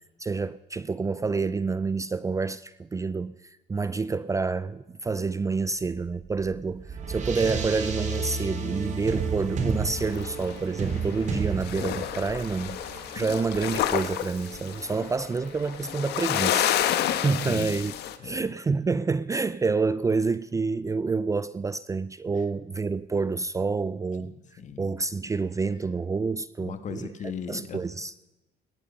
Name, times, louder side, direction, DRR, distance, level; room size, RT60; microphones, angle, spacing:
voice 1, 0.2-17.9 18.2-24.3 24.8-27.1 27.5-28.3, right 4 dB, 20° right, 0.4 m, -28 dB
sound 1, 6.2-16.7, right 4 dB, 45° right, 3.1 m, -33 dB
sound 2, 10.0-11.4 11.6-18.2, left 11 dB, 75° left, 1.3 m, -30 dB
voice 2, 17.1-17.9 18.2-18.5 24.2-24.9 26.6-27.8, left 6 dB, 45° left, 1.8 m, -38 dB
18.0 x 14.0 x 5.6 m
cardioid pair, 110°, 17 cm